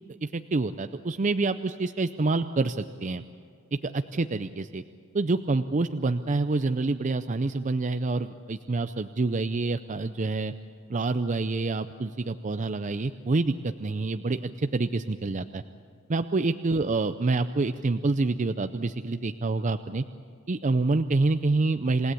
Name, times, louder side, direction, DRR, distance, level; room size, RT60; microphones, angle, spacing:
voice 1, 0.2-3.2 3.8-4.8 5.1-10.5 10.9-15.6 16.1-20.0 20.5-22.1, right 3 dB, 35° right, 9 dB, 0.5 m, -27 dB
28.0 x 17.0 x 8.4 m, 2.3 s
head